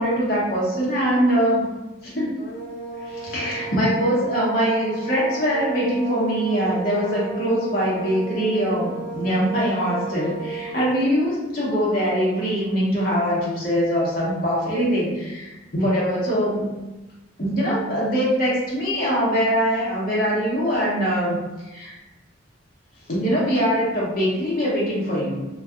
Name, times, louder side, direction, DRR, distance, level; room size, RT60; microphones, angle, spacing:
voice 1, 0.0-1.7 2.0-2.3 3.0-16.7 17.4-21.4 21.7-22.0 23.1-25.4, equal, 45° left, -6 dB, 0.9 m, -22 dB
sound 1, 2.4-11.1, right 3 dB, 80° left, 0.5 m, -34 dB
2.6 x 2.3 x 2.3 m, 1.1 s
head